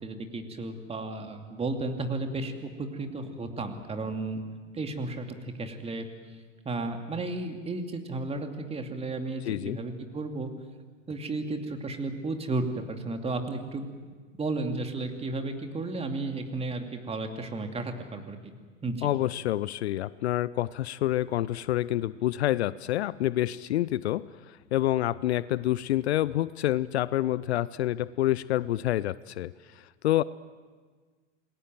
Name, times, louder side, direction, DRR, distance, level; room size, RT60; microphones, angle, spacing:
voice 1, 0.0-4.4 4.7-6.1 6.6-10.5 11.1-13.9 14.4-18.5 18.8-19.1, right 2 dB, 15° right, 5 dB, 2.6 m, -33 dB
voice 2, 9.5-9.8 19.0-29.5 30.0-30.2, left 14 dB, 60° left, 19 dB, 0.6 m, -27 dB
28.0 x 20.5 x 7.7 m, 1.5 s
figure-of-eight pair, 95°, 37 cm